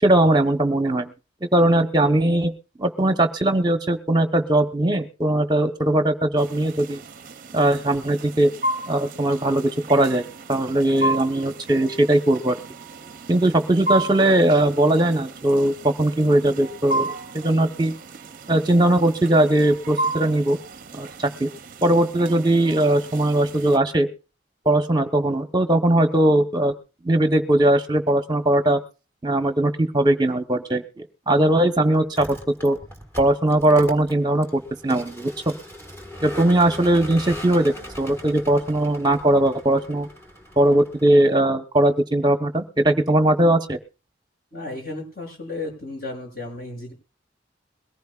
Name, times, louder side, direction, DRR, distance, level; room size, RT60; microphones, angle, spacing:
voice 1, 0.0-1.1 1.4-2.5 2.8-7.0 7.5-8.5 8.9-12.6 13.3-17.9 18.5-20.6 20.9-21.1 21.4-21.5 21.8-24.1 24.6-26.7 27.0-28.8 29.2-32.3 32.6-32.8 33.2-35.3 36.2-40.1 40.6-43.8, right 1 dB, 20° right, 7 dB, 1.1 m, -19 dB
sound 1, 6.4-23.8, right 2 dB, 45° right, 0.7 m, -33 dB
Vehicle, 32.0-41.4, equal, 10° left, 1.6 m, -39 dB
voice 2, 44.5-46.9, left 2 dB, 50° left, 0 dB, 7.4 m, -34 dB
22.0 x 15.0 x 2.4 m, 0.32 s
head